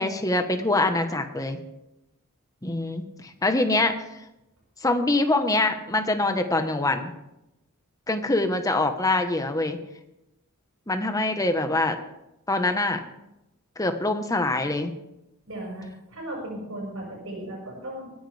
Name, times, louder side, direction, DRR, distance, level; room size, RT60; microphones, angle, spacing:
voice 1, 0.0-1.6 2.6-3.9 4.8-7.1 8.1-9.8 10.9-12.0 12.5-13.0 13.8-14.9, left 2 dB, 15° left, 6 dB, 1.2 m, -24 dB
voice 2, 15.5-18.1, right 1 dB, 65° right, -2 dB, 6.1 m, -36 dB
21.5 x 10.5 x 3.4 m, 0.89 s
head